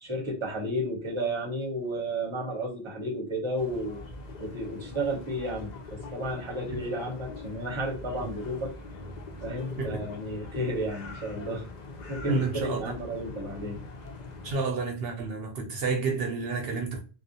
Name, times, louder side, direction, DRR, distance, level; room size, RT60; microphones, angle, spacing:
voice 1, 0.0-4.0 4.4-8.7 9.4-11.7 12.1-13.8, right 1 dB, 30° right, 0.8 m, -32 dB
sound 1, 3.6-14.5, left 3 dB, 55° left, 0.6 m, -42 dB
voice 2, 12.3-12.8 14.4-17.0, right 4 dB, 70° right, 0.8 m, -30 dB
2.4 x 2.0 x 2.6 m
omnidirectional pair, 1.0 m